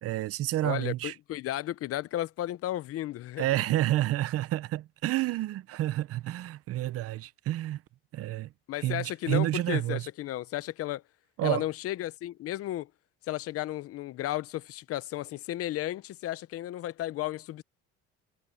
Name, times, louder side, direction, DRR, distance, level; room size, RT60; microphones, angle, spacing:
voice 1, 0.0-1.1 3.4-7.8 8.1-8.5 8.8-10.1 11.4-11.6, right 15 dB, 50° right, 0.8 m, -29 dB
voice 2, 0.6-3.5 8.7-11.0 11.4-12.9 13.3-17.6, left 14 dB, 50° left, 0.8 m, -34 dB
cardioid pair, 130°, 30 cm